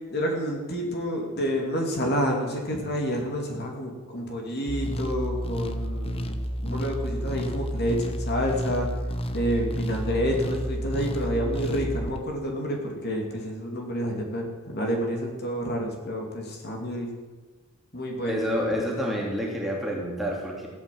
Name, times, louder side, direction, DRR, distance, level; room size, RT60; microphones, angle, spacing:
voice 1, 0.1-8.9 9.3-17.1 17.9-18.4, equal, 45° left, 1 dB, 2.8 m, -29 dB
sound 1, 4.7-12.2, equal, 25° left, 1.0 m, -31 dB
voice 2, 18.2-20.7, equal, ahead, -2 dB, 2.8 m, -28 dB
15.5 x 9.0 x 7.8 m, 1.3 s
head